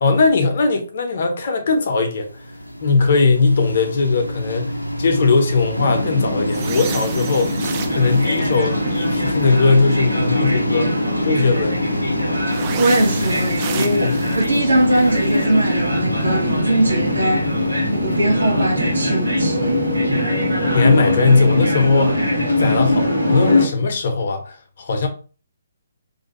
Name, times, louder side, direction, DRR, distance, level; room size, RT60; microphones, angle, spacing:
voice 1, 0.0-2.4 2.8-7.5 7.9-11.8 13.7-14.2 20.1-20.4 20.7-22.3 22.6-25.1, left 4 dB, 45° left, 0.6 m, -19 dB
sound 1, 2.0-21.0, equal, 85° left, 0.4 m, -27 dB
sound 2, 5.7-23.7, left 1 dB, 90° right, 1.3 m, -22 dB
sound 3, 6.5-9.5 12.5-15.6, right 7 dB, 25° right, 0.3 m, -33 dB
voice 2, 12.8-17.5 17.9-19.8, right 1 dB, 65° right, 0.9 m, -20 dB
2.5 x 2.2 x 2.9 m
figure-of-eight pair, 135°, 0 cm